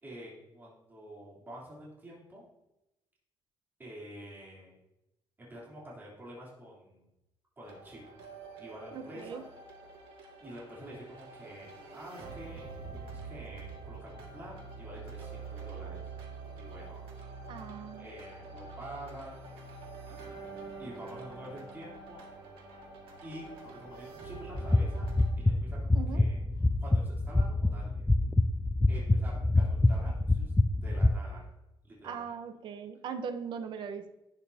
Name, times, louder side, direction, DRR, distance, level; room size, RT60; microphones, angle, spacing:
voice 1, 0.0-2.4 3.8-4.7 5.4-7.1 7.6-8.0 8.6-9.4 10.4-16.0 16.6-17.0 18.0-19.4 20.8-22.2 23.2-23.4 23.7-25.1 25.4-26.4 26.8-28.1 28.9-30.5 30.8-31.5 31.8-32.3, right 1 dB, 20° right, -6 dB, 3.3 m, -47 dB
sound 1, 7.6-25.3, right 4 dB, 75° right, 2.0 m, -46 dB
voice 2, 8.9-9.4 17.5-18.1 25.9-26.2 32.0-34.1, right 6 dB, 60° right, 9 dB, 0.9 m, -39 dB
sound 2, 24.5-31.1, left 2 dB, 10° left, 0.3 m, -26 dB
11.5 x 9.0 x 2.8 m, 0.92 s
cardioid pair, 145°, 9 cm